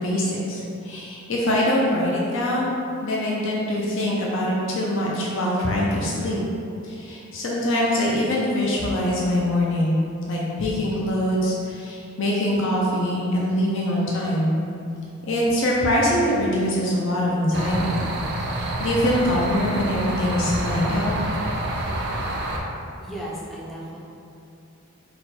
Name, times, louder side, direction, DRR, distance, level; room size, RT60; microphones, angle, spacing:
voice 1, 0.0-2.8 3.0-6.4 6.8-14.5 15.3-18.0 18.5-21.1, left 1 dB, 60° left, -4 dB, 0.5 m, -23 dB
sound 1, 17.5-22.6, right 1 dB, 50° right, 0.4 m, -28 dB
voice 2, 23.0-24.0, right 1 dB, ahead, -6 dB, 0.5 m, -35 dB
4.3 x 2.2 x 4.0 m, 2.6 s
head